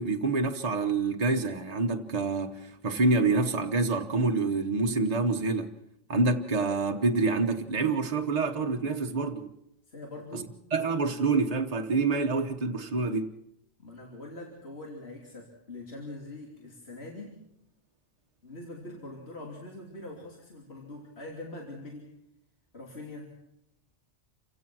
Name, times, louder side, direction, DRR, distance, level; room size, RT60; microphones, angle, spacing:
voice 1, 0.0-5.7 6.1-9.6 10.3-10.4 10.7-13.3, right 3 dB, 35° right, 1.2 m, -27 dB
voice 2, 9.9-10.6 13.8-17.4 18.4-22.1 22.7-23.4, left 2 dB, 60° left, 3.4 m, -43 dB
28.0 x 16.5 x 6.2 m
omnidirectional pair, 1.2 m